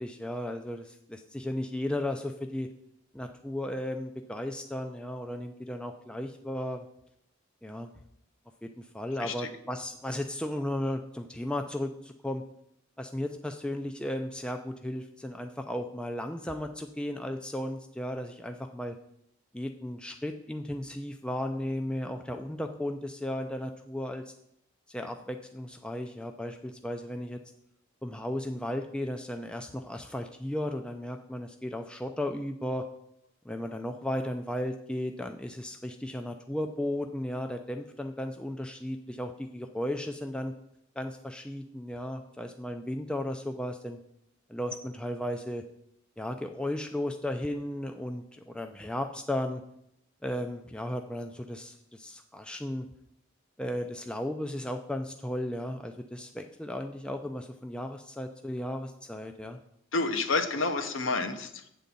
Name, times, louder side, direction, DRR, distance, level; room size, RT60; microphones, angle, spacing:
voice 1, 0.0-2.7 3.1-6.9 7.6-7.9 8.6-12.4 13.0-19.0 19.5-24.3 24.9-27.4 28.0-32.8 33.5-40.5 41.0-44.0 44.5-45.6 46.2-49.6 50.2-52.9 53.6-59.6, left 1 dB, 5° left, 5 dB, 0.3 m, -35 dB
voice 2, 9.2-9.5 59.9-61.7, left 3 dB, 65° left, 7 dB, 0.8 m, -29 dB
8.2 x 3.9 x 6.9 m, 0.74 s
head